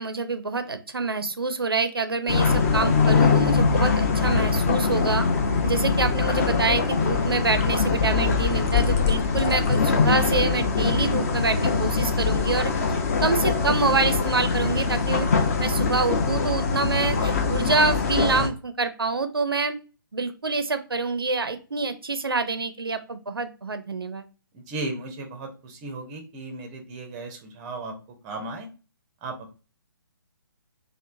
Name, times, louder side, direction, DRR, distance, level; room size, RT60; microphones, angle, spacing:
voice 1, 0.0-5.3 5.6-12.7 13.2-15.3 15.6-19.8 20.1-24.2, right 4 dB, 80° right, 10 dB, 0.4 m, -26 dB
sound 1, 2.3-18.5, left 5 dB, 40° left, 0.5 m, -22 dB
voice 2, 24.5-27.9 28.2-28.7 29.2-29.5, right 2 dB, 20° right, 4 dB, 0.4 m, -35 dB
3.0 x 2.0 x 2.4 m, 0.34 s
figure-of-eight pair, 135°, 12 cm